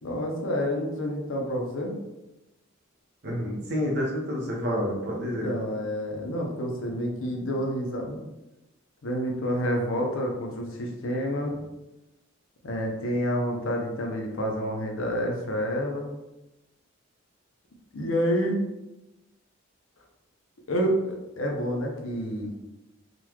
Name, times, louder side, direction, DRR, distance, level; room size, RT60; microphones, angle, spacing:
voice 1, 0.0-1.9 5.2-8.2 9.0-11.6 12.6-16.1 17.9-18.6 20.7-22.5, equal, 65° left, 1 dB, 0.7 m, -28 dB
voice 2, 3.2-5.5, equal, 50° right, -2 dB, 0.9 m, -29 dB
3.8 x 2.3 x 3.0 m, 0.98 s
head